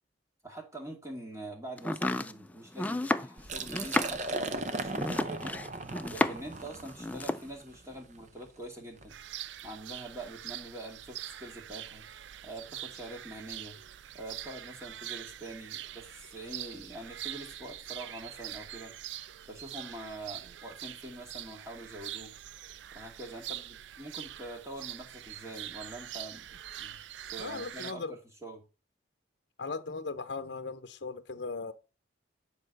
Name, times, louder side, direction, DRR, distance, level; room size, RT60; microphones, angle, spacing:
voice 1, 0.4-5.6 6.1-9.2 9.6-12.1 12.4-13.8 14.1-18.9 19.5-22.3 22.9-27.0 27.3-28.6, right 1 dB, 15° right, 2.3 m, -44 dB
Domestic sounds home sounds, 1.8-6.6 6.9-7.5, left 1 dB, 10° left, 0.4 m, -32 dB
Liquid, 3.4-9.1, right 3 dB, 40° right, 0.7 m, -38 dB
sound 1, 9.1-27.9, right 12 dB, 75° right, 0.4 m, -44 dB
voice 2, 27.4-28.2 29.6-31.7, left 4 dB, 65° left, 0.7 m, -38 dB
10.0 x 4.3 x 6.5 m
head